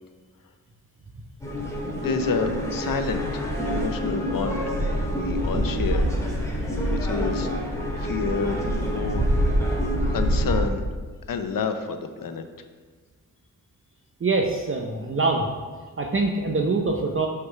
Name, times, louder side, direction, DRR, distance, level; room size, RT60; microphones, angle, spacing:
sound 1, 1.4-10.6, equal, 10° left, 1.9 m, -26 dB
voice 1, 2.0-4.6 5.1-6.1 6.9-7.5 8.0-9.2 10.1-10.8 11.3-12.4, left 5 dB, 70° left, 8 dB, 0.7 m, -29 dB
voice 2, 14.2-15.5 16.0-17.3, right 3 dB, 35° right, 2 dB, 0.7 m, -24 dB
6.4 x 5.9 x 4.7 m, 1.4 s
cardioid pair, 80°, 36 cm